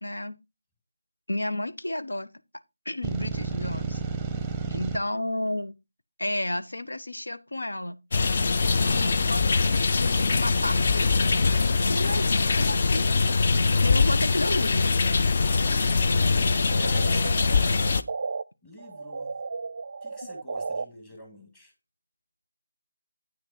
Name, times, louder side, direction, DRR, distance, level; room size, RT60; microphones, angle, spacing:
voice 1, 0.0-0.4 1.3-2.3 2.8-4.0 4.7-5.7 6.2-8.0 8.8-13.1 13.8-15.1, left 1 dB, 80° left, 1.0 m, -32 dB
sound 1, 3.0-5.0, right 5 dB, 5° right, 0.8 m, -31 dB
voice 2, 4.3-4.8 15.9-17.3 18.6-19.3 20.0-21.7, left 1 dB, 15° left, 2.1 m, -46 dB
sound 2, 8.1-18.0, left 4 dB, 40° left, 0.5 m, -23 dB
sound 3, 16.4-18.4 18.8-20.9, right 4 dB, 45° right, 0.5 m, -35 dB
9.0 x 6.1 x 4.3 m
figure-of-eight pair, 165°, 0 cm